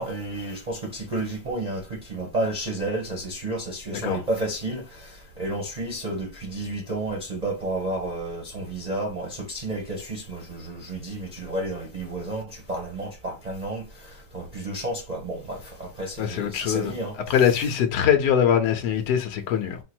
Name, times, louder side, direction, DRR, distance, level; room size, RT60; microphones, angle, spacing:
voice 1, 0.0-17.2, right 2 dB, 30° right, 0.7 m, -31 dB
voice 2, 16.2-16.9 17.3-19.8, left 8 dB, 65° left, 1.3 m, -22 dB
4.5 x 2.0 x 4.4 m
omnidirectional pair, 2.1 m